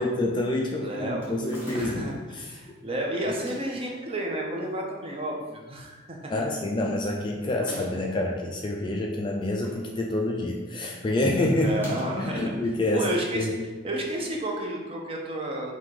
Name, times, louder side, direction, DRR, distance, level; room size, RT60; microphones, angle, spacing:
voice 1, 0.0-2.0 2.3-2.4 6.3-11.9 12.2-13.1 13.3-13.5, left 1 dB, 25° left, 0 dB, 0.3 m, -27 dB
voice 2, 0.8-1.3 1.7-6.3 11.6-12.5 12.9-13.5 13.8-15.8, right 1 dB, 30° right, -1 dB, 0.6 m, -31 dB
sound 1, 1.2-2.2 3.3-3.8 4.6-5.3 5.6-5.7 5.9-6.0 7.5-8.1 9.1-9.9 10.2-10.5 11.7-12.3, equal, 10° right, 1.4 m, -42 dB
3.7 x 2.8 x 4.6 m, 1.3 s
head